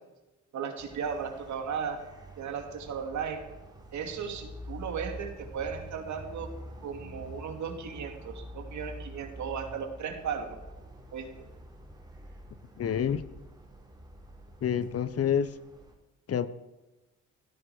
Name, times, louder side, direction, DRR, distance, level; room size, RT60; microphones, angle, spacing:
voice 1, 0.5-2.0 2.4-3.5 3.9-6.6 6.8-10.6 11.1-11.3, right 6 dB, 70° right, 5 dB, 2.6 m, -36 dB
sound 1, 0.8-15.9, equal, 15° right, 4.8 m, -47 dB
voice 2, 12.8-13.2 14.6-15.5 16.3-16.5, left 8 dB, 50° left, 14 dB, 1.0 m, -27 dB
16.5 x 13.0 x 5.0 m, 1.1 s
cardioid pair, 90°, 30 cm